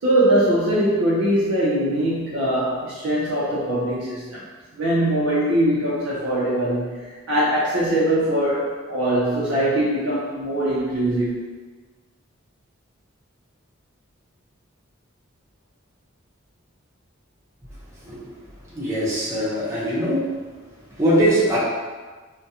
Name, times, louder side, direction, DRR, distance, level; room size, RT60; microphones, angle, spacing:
voice 1, 0.0-4.4 4.7-11.5, right 1 dB, 65° right, -8 dB, 0.5 m, -22 dB
voice 2, 18.0-18.3 18.7-20.3 20.9-21.6, right 1 dB, 15° right, -8 dB, 0.7 m, -21 dB
2.3 x 2.1 x 2.7 m, 1.4 s
head